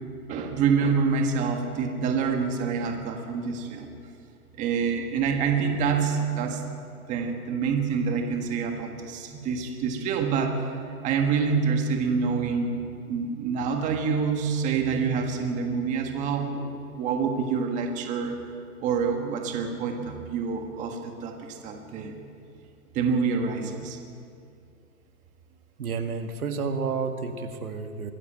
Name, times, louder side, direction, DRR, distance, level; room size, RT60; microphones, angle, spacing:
voice 1, 0.3-3.9 4.6-6.6 7.1-10.7 11.0-12.8 13.1-18.4 18.8-22.1 22.9-24.0, right 5 dB, 15° right, 3 dB, 1.7 m, -27 dB
voice 2, 25.8-28.1, right 5 dB, 70° right, 6 dB, 2.1 m, -30 dB
24.0 x 13.0 x 9.0 m, 2.4 s
hypercardioid pair, 160°, 45 cm